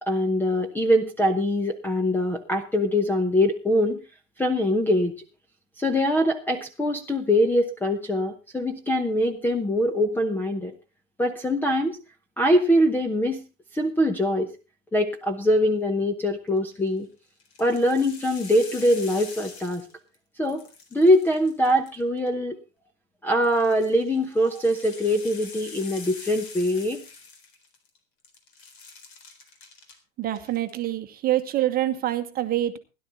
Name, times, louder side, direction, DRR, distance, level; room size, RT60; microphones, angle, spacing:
voice 1, 0.0-4.0 4.4-5.1 5.8-10.7 11.2-12.0 12.4-13.4 13.7-14.5 14.9-17.1 17.6-19.8 20.4-20.6 20.9-22.6 23.2-27.0, equal, 5° left, 7 dB, 0.9 m, -23 dB
sound 1, 16.6-16.9 17.4-20.2 20.4-22.3 23.4-28.0 28.2-30.0 30.3-30.8, left 4 dB, 50° left, 4.0 m, -45 dB
voice 2, 30.2-32.8, right 13 dB, 20° right, 9 dB, 1.3 m, -26 dB
17.0 x 11.5 x 4.0 m, 0.30 s
figure-of-eight pair, 105°, 40 cm